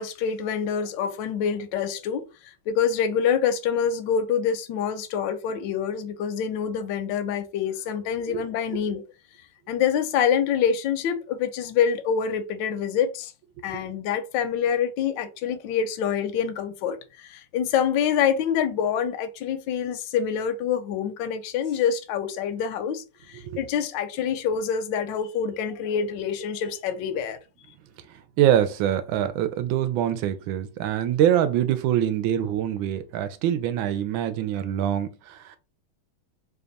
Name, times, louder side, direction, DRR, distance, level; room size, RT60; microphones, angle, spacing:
voice 1, 0.0-2.2 2.7-9.0 9.7-13.3 13.6-27.4, left 7 dB, 75° left, 1.1 m, -26 dB
voice 2, 28.1-35.6, right 10 dB, 75° right, 1.2 m, -24 dB
3.4 x 2.3 x 3.9 m
omnidirectional pair, 2.3 m